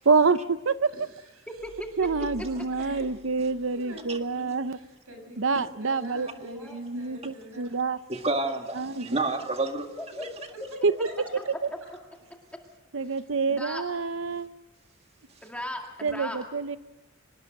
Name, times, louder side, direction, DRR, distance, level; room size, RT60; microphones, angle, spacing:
voice 1, 0.0-0.9 2.0-4.8 5.4-8.0 8.8-9.1 10.8-10.9 12.9-14.5 16.0-16.8, right 4 dB, 60° right, 0.8 m, -27 dB
voice 2, 0.9-1.5 2.8-3.0 3.7-7.8 11.0-11.1, right 1 dB, 85° right, 7.6 m, -46 dB
voice 3, 1.5-2.1 2.4-2.6 6.1-6.9 9.0-9.2 10.0-10.3 11.4-11.5 13.5-13.8 15.4-16.4, left 1 dB, 5° left, 2.2 m, -38 dB
sound 1, 1.6-4.4, equal, 80° left, 4.6 m, -49 dB
voice 4, 8.1-9.9, right 2 dB, 30° right, 1.8 m, -29 dB
24.5 x 20.0 x 6.6 m
head